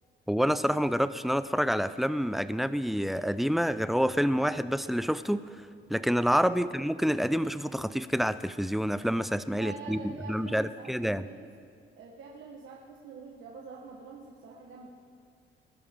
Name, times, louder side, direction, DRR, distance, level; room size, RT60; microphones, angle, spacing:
voice 1, 0.3-5.4 5.9-11.2, equal, ahead, 13 dB, 0.4 m, -28 dB
voice 2, 9.4-11.5 11.9-14.9, right 5 dB, 75° right, -2 dB, 1.3 m, -46 dB
21.0 x 12.5 x 3.7 m, 2.2 s
cardioid pair, 90°, 20 cm